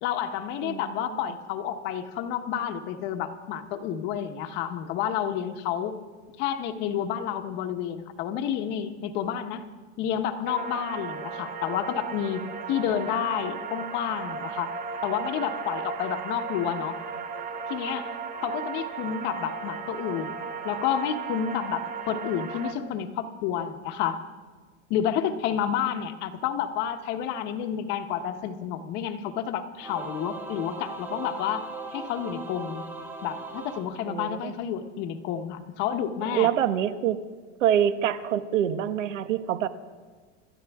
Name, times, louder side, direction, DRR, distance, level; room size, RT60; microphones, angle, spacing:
voice 1, 0.0-6.0 6.4-9.6 10.0-14.7 15.0-17.0 17.7-18.1 18.4-20.4 20.6-24.2 24.9-31.7 31.9-32.9 33.2-36.5, left 9 dB, 30° left, 7 dB, 1.0 m, -30 dB
sound 1, 10.5-22.7, right 5 dB, 25° right, 1.0 m, -35 dB
Singing / Musical instrument, 29.8-34.6, right 3 dB, 5° right, 0.4 m, -39 dB
voice 2, 34.1-34.5 36.3-37.2 37.6-39.7, right 10 dB, 90° right, 11 dB, 1.3 m, -25 dB
27.5 x 13.0 x 3.5 m, 1.5 s
supercardioid pair, 165°, 36 cm